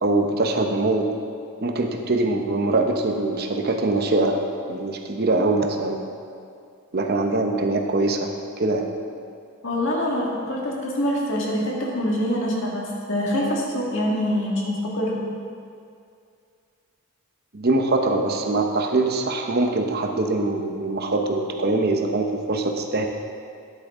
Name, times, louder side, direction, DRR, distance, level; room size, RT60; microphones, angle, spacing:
voice 1, 0.0-1.1 1.6-4.4 4.7-6.0 6.9-8.3 8.6-8.9 17.5-23.1, right 2 dB, 45° right, 3 dB, 0.8 m, -23 dB
voice 2, 9.6-15.2, equal, 60° left, -3 dB, 1.8 m, -25 dB
10.5 x 8.8 x 3.6 m, 2.4 s
head